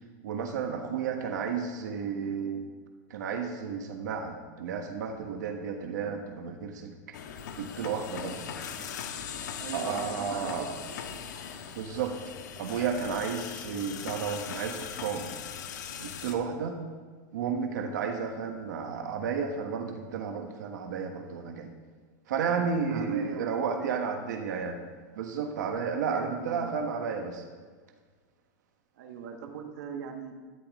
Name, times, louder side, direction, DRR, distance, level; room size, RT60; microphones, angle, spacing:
voice 1, 0.2-2.7 3.1-7.2 7.6-8.4 9.7-10.7 11.7-12.1 12.6-15.3 16.0-16.8 17.3-21.7 22.3-24.8 25.2-27.4, right 6 dB, 85° right, 4 dB, 1.4 m, -32 dB
sound 1, 7.1-16.3, left 7 dB, 90° left, 1.2 m, -40 dB
voice 2, 9.6-11.3 22.4-22.6 22.9-24.1 26.0-26.8 28.9-30.3, right 6 dB, 60° right, 3 dB, 1.3 m, -41 dB
12.5 x 10.0 x 3.7 m, 1.5 s
supercardioid pair, 175°, 9 cm